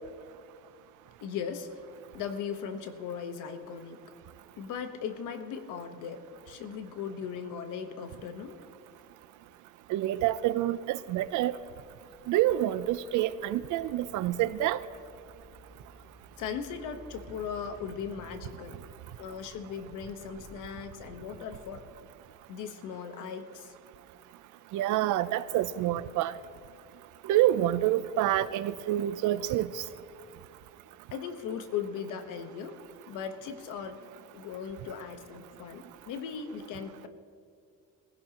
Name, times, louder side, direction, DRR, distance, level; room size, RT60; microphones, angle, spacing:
voice 1, 1.2-1.8 2.1-4.0 4.6-8.6 16.4-18.8 19.2-21.8 22.5-23.7 31.1-32.8 33.1-34.0 34.3-37.1, left 7 dB, 80° left, 8 dB, 1.2 m, -38 dB
sound 1, 9.4-9.5 10.5-22.0, right 1 dB, 35° right, 3.5 m, -55 dB
voice 2, 9.9-11.6 12.3-14.8 24.7-26.3 27.3-29.8, right 13 dB, 80° right, 15 dB, 0.6 m, -27 dB
21.0 x 15.5 x 3.0 m, 2.4 s
cardioid pair, 155°, 30 cm